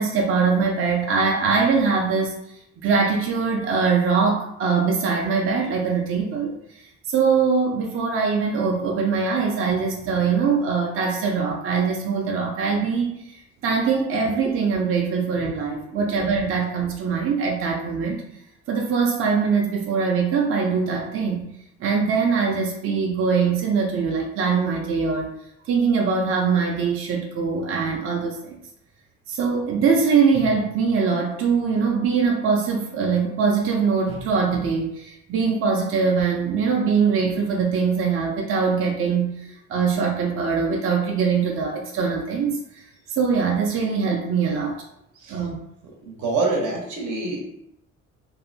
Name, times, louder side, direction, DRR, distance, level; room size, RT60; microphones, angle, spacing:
voice 1, 0.0-2.4 2.8-18.2 18.7-21.4 21.8-25.3 25.6-28.6 29.3-42.6 43.1-44.8 45.3-45.6, right 5 dB, 45° right, 0 dB, 0.4 m, -22 dB
voice 2, 46.0-47.4, right 3 dB, 75° right, -1 dB, 0.8 m, -26 dB
2.7 x 2.1 x 2.6 m, 0.80 s
cardioid pair, 90°, 30 cm